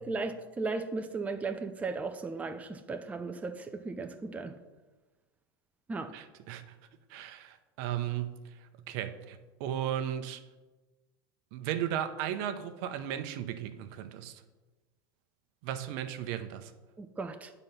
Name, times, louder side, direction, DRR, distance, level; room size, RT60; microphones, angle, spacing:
voice 1, 0.0-4.5 5.9-6.1 17.0-17.5, right 3 dB, 10° right, 6 dB, 0.5 m, -36 dB
voice 2, 6.1-6.8 7.1-8.6 8.9-10.4 11.5-14.4 15.6-16.7, right 10 dB, 60° right, 9 dB, 0.7 m, -35 dB
8.9 x 4.0 x 5.5 m, 1.2 s
hypercardioid pair, 110°, 13 cm